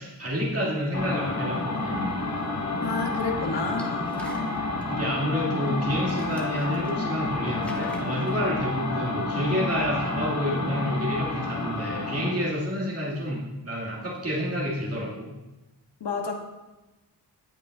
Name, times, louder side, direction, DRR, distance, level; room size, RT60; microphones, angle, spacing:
voice 1, 0.0-2.1 4.9-15.3, equal, 35° right, -6 dB, 2.6 m, -29 dB
sound 1, 0.9-12.4, left 2 dB, 40° left, 1.0 m, -30 dB
sound 2, 2.4-2.5 3.6-4.9 5.7-5.8 6.0-7.2 7.5-8.4, equal, 5° left, 0.8 m, -46 dB
voice 2, 2.8-4.0 16.0-16.3, left 4 dB, 80° left, 3 dB, 1.3 m, -30 dB
17.0 x 5.8 x 2.7 m, 1.1 s
wide cardioid pair, 155°, 41 cm